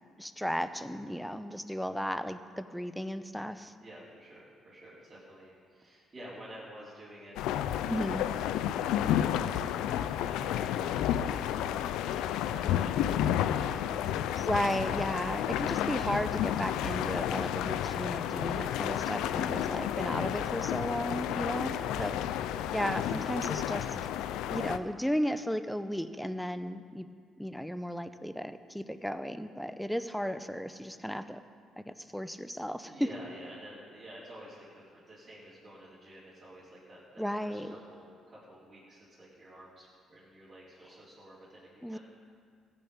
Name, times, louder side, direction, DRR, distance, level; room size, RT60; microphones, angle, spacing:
voice 1, 0.2-3.7 7.9-8.3 14.4-22.2 22.7-24.0 24.5-27.1 27.4-31.4 31.8-32.9 37.2-37.7 41.8-42.0, equal, ahead, 11 dB, 0.7 m, -34 dB
voice 2, 3.8-12.2 12.5-14.4 21.4-22.1 32.0-32.2 32.9-42.0, equal, 30° right, -10 dB, 4.5 m, -51 dB
sound 1, 7.4-24.8, left 10 dB, 85° left, 0.5 m, -31 dB
15.0 x 7.0 x 8.8 m, 2.1 s
supercardioid pair, 70°, 0 cm